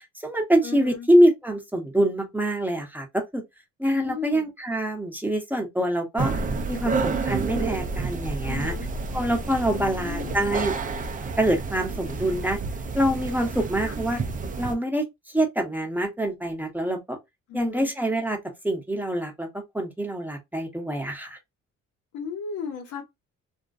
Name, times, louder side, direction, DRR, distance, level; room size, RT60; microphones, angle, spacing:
voice 1, 0.0-3.4 3.8-6.3 6.7-8.8 9.1-10.7 11.4-12.6 12.9-14.2 14.6-17.2 17.5-18.4 18.6-19.5 19.7-21.4, right 1 dB, 5° right, 0.8 m, -25 dB
voice 2, 0.6-1.1 3.9-4.5 8.4-8.9 9.6-10.3 13.8-13.9 17.5-17.9 22.1-23.0, left 6 dB, 85° left, 1.1 m, -35 dB
sound 1, 6.2-14.8, right 4 dB, 30° right, 0.4 m, -30 dB
2.5 x 2.1 x 2.4 m
cardioid pair, 90°, 30 cm